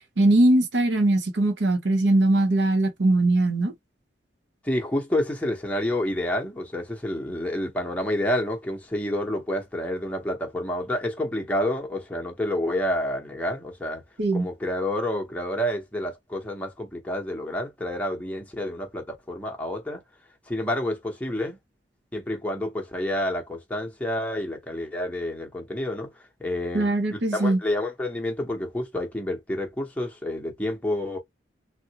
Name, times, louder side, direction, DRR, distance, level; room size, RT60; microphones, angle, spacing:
voice 1, 0.2-3.7 14.2-14.5 26.7-27.6, right 2 dB, 75° right, 0.8 m, -21 dB
voice 2, 4.6-14.0 14.3-20.0 20.5-21.6 22.1-26.1 26.4-31.2, left 1 dB, 10° left, 0.8 m, -29 dB
3.7 x 2.1 x 2.9 m
head